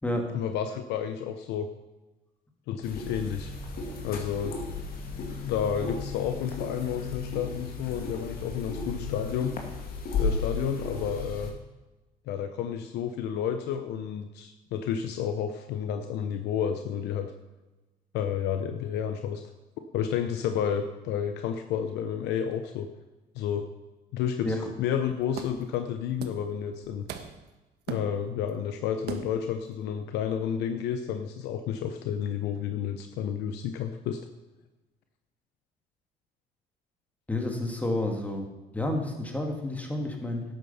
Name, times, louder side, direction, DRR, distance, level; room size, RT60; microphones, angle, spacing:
voice 1, 0.3-1.7 2.7-3.5 4.0-4.6 5.3-9.6 10.2-11.5 12.3-17.3 18.1-19.4 19.9-22.9 23.3-23.7 24.1-27.1 27.9-34.2, left 8 dB, 85° left, 7 dB, 0.8 m, -31 dB
sound 1, 2.8-11.5, left 4 dB, 60° left, 2.2 m, -34 dB
sound 2, 24.8-24.9 25.3-25.7 26.2-26.5 26.8-27.5 27.9-28.5 29.1-29.5, right 6 dB, 75° right, 1.3 m, -39 dB
voice 2, 37.3-38.5 38.7-40.4, left 1 dB, 10° left, 2 dB, 2.4 m, -30 dB
12.0 x 9.1 x 5.6 m, 1.1 s
cardioid pair, 110°, 17 cm